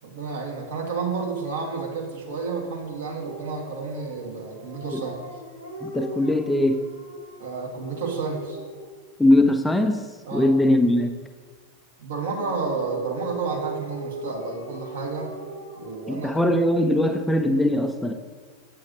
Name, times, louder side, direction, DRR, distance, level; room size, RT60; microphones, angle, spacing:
voice 1, 0.0-5.2 7.4-8.6 10.2-10.5 12.0-15.3 15.8-16.6, right 4 dB, 65° right, -2 dB, 1.5 m, -31 dB
Dog, 3.2-9.0 12.2-16.8, right 1 dB, 90° right, 2.1 m, -40 dB
voice 2, 5.8-6.9 9.2-11.2 16.1-18.1, left 1 dB, 5° left, 6 dB, 0.4 m, -21 dB
7.9 x 6.5 x 2.6 m, 1.5 s
figure-of-eight pair, 90°, 0 cm